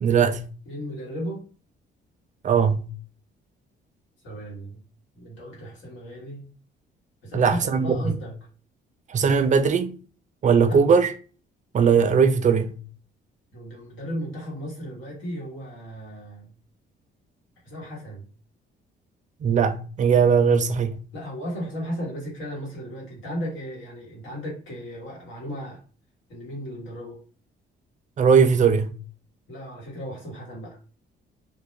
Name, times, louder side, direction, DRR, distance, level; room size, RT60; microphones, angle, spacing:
voice 1, 0.0-0.5 2.4-2.9 7.3-8.1 9.1-10.0 10.4-11.1 11.7-12.8 19.4-21.0 28.2-28.9, right 6 dB, 40° right, 0.4 m, -19 dB
voice 2, 0.7-1.4 4.2-4.8 5.2-6.5 7.2-8.3 10.7-10.8 13.5-16.5 17.6-18.3 21.1-25.8 26.3-27.2 29.5-30.8, equal, 75° left, 1.3 m, -35 dB
2.2 x 2.2 x 3.1 m
cardioid pair, 90°, 20 cm